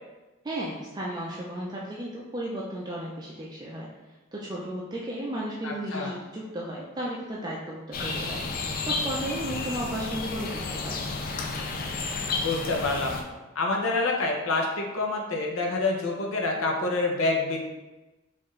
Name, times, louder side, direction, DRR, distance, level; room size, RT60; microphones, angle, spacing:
voice 1, 0.4-3.9 4.3-8.4 8.8-11.0, right 1 dB, 20° right, -4 dB, 0.4 m, -34 dB
voice 2, 5.6-6.1 12.4-13.2 13.6-17.6, left 3 dB, 75° left, 0 dB, 0.7 m, -27 dB
sound 1, 7.9-13.2, left 3 dB, 45° left, 0.4 m, -31 dB
4.4 x 2.5 x 3.1 m, 1.1 s
head